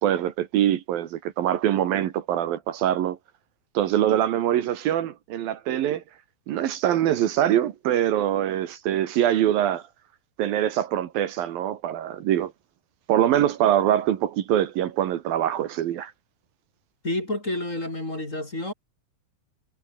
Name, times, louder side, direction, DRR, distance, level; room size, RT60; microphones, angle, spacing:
voice 1, 0.0-3.2 3.7-6.0 6.5-9.8 10.4-12.5 13.1-16.1, right 11 dB, 75° right, 3.2 m, -23 dB
voice 2, 17.0-18.7, left 1 dB, 20° left, 5.1 m, -29 dB
omnidirectional pair, 4.3 m